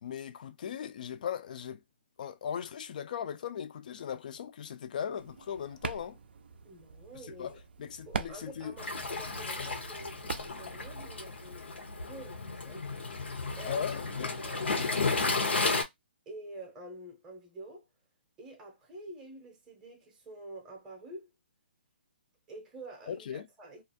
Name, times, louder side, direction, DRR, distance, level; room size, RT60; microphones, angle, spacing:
voice 1, 0.0-1.8 2.2-6.2 7.3-8.8 13.6-14.3 23.1-23.5, left 8 dB, 45° left, 0.3 m, -38 dB
sound 1, 5.2-11.1, right 6 dB, 65° right, 0.3 m, -43 dB
voice 2, 6.6-7.6 8.1-11.7 12.0-13.0 13.6-13.8 14.2-15.5 16.3-17.8 18.4-21.3 22.5-23.8, right 1 dB, 10° right, 0.6 m, -47 dB
Waves surf, 8.8-15.8, left 3 dB, 85° left, 0.8 m, -33 dB
2.4 x 2.1 x 2.6 m
hypercardioid pair, 160°, 6 cm